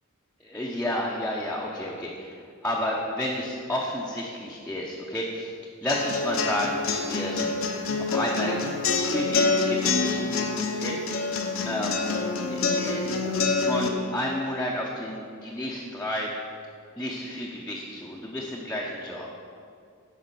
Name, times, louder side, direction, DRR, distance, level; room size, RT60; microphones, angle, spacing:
voice 1, 0.4-5.5 5.8-7.5 8.0-12.0 12.5-16.3 17.0-19.4, left 1 dB, 5° left, -4 dB, 0.8 m, -31 dB
sound 1, 5.9-13.9, left 4 dB, 75° left, 0.9 m, -26 dB
10.0 x 5.0 x 6.8 m, 2.2 s
head